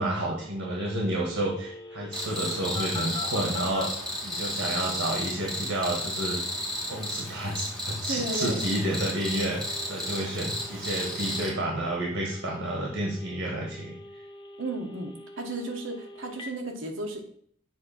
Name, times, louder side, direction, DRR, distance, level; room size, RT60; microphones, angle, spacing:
voice 1, 0.0-3.9 4.2-6.4 6.9-14.2, right 1 dB, 85° right, -2 dB, 1.4 m, -30 dB
Telephone, 0.8-3.9 8.3-16.5, left 3 dB, 25° left, 0.6 m, -43 dB
Cricket, 2.1-11.5, left 1 dB, ahead, 1.3 m, -33 dB
voice 2, 8.1-8.6 14.6-17.3, right 2 dB, 65° right, 3 dB, 1.1 m, -34 dB
7.6 x 2.7 x 5.6 m, 0.63 s
head